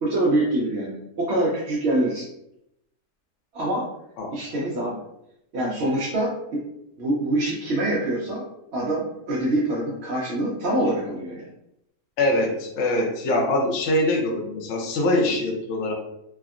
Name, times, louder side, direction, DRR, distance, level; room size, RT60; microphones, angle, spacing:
voice 1, 0.0-2.3 3.5-3.8 4.3-5.0 5.5-6.6 7.0-8.4 8.7-11.4, right 1 dB, 60° right, -6 dB, 0.7 m, -25 dB
voice 2, 12.2-15.9, left 1 dB, 60° left, -1 dB, 0.8 m, -23 dB
3.4 x 2.1 x 2.4 m, 0.80 s
omnidirectional pair, 1.6 m